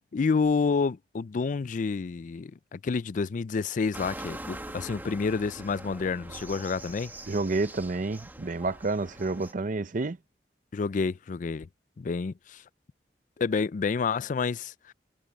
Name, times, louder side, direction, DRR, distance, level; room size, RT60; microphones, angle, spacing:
voice 1, 0.1-7.1 10.7-11.7 12.0-12.6 13.4-14.9, left 4 dB, 45° left, 0.4 m, -29 dB
sound 1, 3.9-9.5, right 1 dB, 10° right, 1.7 m, -43 dB
voice 2, 7.3-10.2, right 3 dB, 45° right, 0.7 m, -29 dB
head